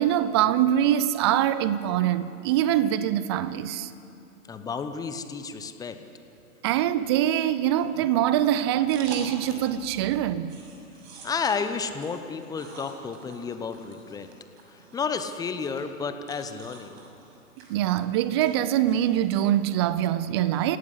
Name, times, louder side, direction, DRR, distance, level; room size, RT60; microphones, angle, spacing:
voice 1, 0.0-3.9 6.6-10.5 17.7-20.8, right 11 dB, 20° right, 0.5 m, -24 dB
voice 2, 4.5-6.0 11.2-14.3 14.9-17.0, left 5 dB, 10° left, 0.9 m, -31 dB
sound 1, 8.9-9.8 10.1-19.4, right 4 dB, 45° right, 6.6 m, -47 dB
27.0 x 17.5 x 8.5 m
figure-of-eight pair, 115°, 44 cm